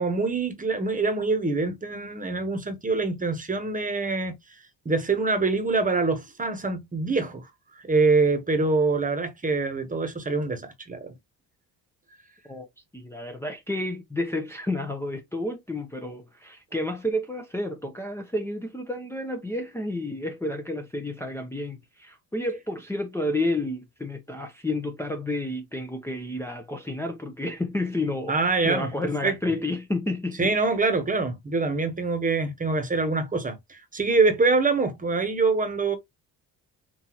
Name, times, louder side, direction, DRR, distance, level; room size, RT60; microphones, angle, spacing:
voice 1, 0.0-4.4 4.8-7.5 7.7-11.1 28.3-28.9 29.2-29.5 30.4-36.0, right 3 dB, 20° right, 1.2 m, -25 dB
voice 2, 12.9-30.5, left 1 dB, 5° left, 0.8 m, -30 dB
5.9 x 2.7 x 3.0 m
cardioid pair, 115°, 39 cm